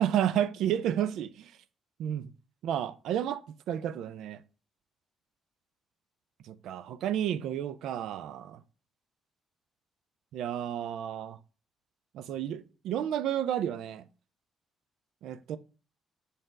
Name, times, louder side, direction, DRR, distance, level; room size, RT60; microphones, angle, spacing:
voice 1, 0.0-1.5 2.0-2.3 2.6-4.4 6.5-8.6 10.3-11.4 12.1-14.0 15.2-15.6, right 10 dB, 85° right, 0.3 m, -31 dB
4.4 x 3.3 x 3.6 m
cardioid pair, 90°, 0 cm